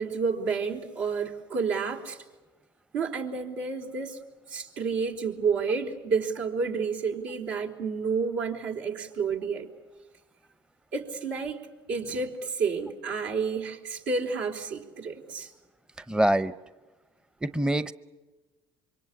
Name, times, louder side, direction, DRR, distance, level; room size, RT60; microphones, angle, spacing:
voice 1, 0.0-2.2 2.9-4.2 4.5-9.7 10.9-11.6 11.9-15.5, right 5 dB, 80° right, 0 dB, 4.1 m, -30 dB
voice 2, 16.1-16.5 17.4-17.9, right 1 dB, 5° right, 14 dB, 0.8 m, -24 dB
26.5 x 24.0 x 8.6 m, 1.2 s
hypercardioid pair, 70°, 12 cm